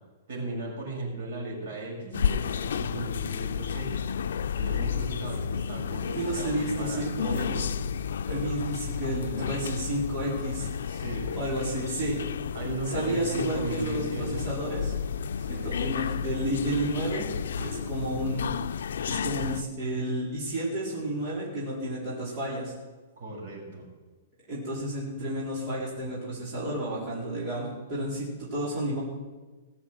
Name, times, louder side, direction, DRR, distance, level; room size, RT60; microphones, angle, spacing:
voice 1, 0.3-4.1 4.5-7.5 10.9-11.4 12.5-14.5 15.4-15.9 23.2-23.9, right 2 dB, 55° right, 0 dB, 5.9 m, -37 dB
sound 1, 2.1-19.6, left 7 dB, 80° left, 0.6 m, -32 dB
voice 2, 6.1-7.6 8.3-10.7 11.4-12.2 12.9-14.9 15.5-17.3 17.6-18.5 19.1-22.7 24.5-29.0, right 1 dB, 25° right, -7 dB, 4.3 m, -31 dB
19.0 x 7.2 x 7.8 m, 1.3 s
hypercardioid pair, 170°, 0 cm